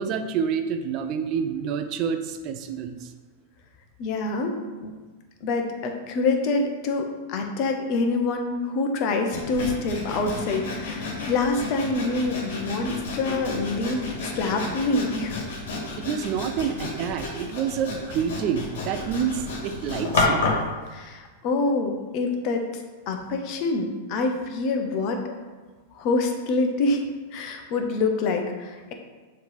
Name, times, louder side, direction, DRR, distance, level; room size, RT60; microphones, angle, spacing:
voice 1, 0.0-3.0 16.0-20.4, right 7 dB, 45° right, 8 dB, 0.6 m, -28 dB
voice 2, 4.0-4.9 5.4-15.4 20.9-22.6 23.1-25.3 26.0-27.0 27.3-28.9, left 3 dB, 45° left, 4 dB, 1.0 m, -26 dB
Sawing, 9.3-20.7, left 3 dB, 60° left, 2.0 m, -30 dB
7.1 x 3.3 x 5.8 m, 1.3 s
hypercardioid pair, 100°, 0 cm